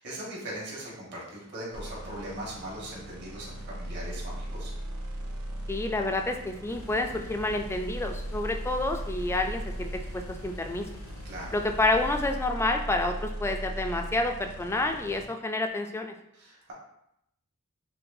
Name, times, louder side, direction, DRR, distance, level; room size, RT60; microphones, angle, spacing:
voice 1, 0.0-4.7 11.2-11.5 16.3-16.7, right 1 dB, 55° right, -4 dB, 1.3 m, -40 dB
sound 1, 1.7-15.2, right 1 dB, 75° right, 0.7 m, -38 dB
voice 2, 5.7-10.9 11.5-16.1, left 2 dB, 10° left, 4 dB, 0.3 m, -29 dB
sound 2, 6.7-12.4, left 1 dB, 85° left, 0.4 m, -44 dB
5.8 x 2.3 x 2.6 m, 0.78 s
head